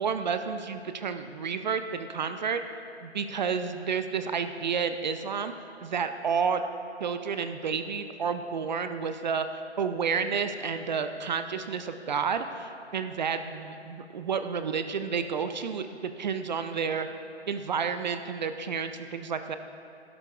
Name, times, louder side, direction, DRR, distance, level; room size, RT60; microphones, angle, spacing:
voice 1, 0.0-2.6 3.0-5.5 5.8-6.6 7.0-9.5 9.8-15.9 16.2-17.1 17.5-19.6, right 6 dB, 45° right, 9 dB, 0.5 m, -30 dB
18.5 x 12.0 x 2.4 m, 2.5 s
figure-of-eight pair, 125°, 33 cm